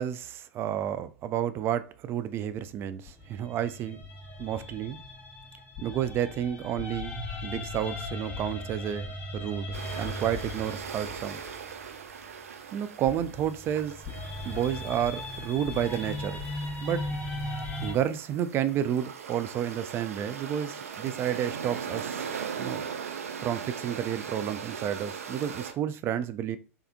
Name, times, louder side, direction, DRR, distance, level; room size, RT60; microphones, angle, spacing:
voice 1, 0.0-4.0 4.4-5.0 5.8-11.4 12.7-14.0 14.4-16.4 16.8-17.1 17.8-22.2 22.6-22.9 23.4-26.6, right 10 dB, 30° right, 0.3 m, -31 dB
sound 1, 3.1-12.2 13.1-17.9, left 1 dB, 15° left, 1.1 m, -38 dB
sound 2, 9.7-25.7, right 7 dB, 70° right, 0.6 m, -40 dB
3.4 x 3.4 x 2.2 m
figure-of-eight pair, 90°, 8 cm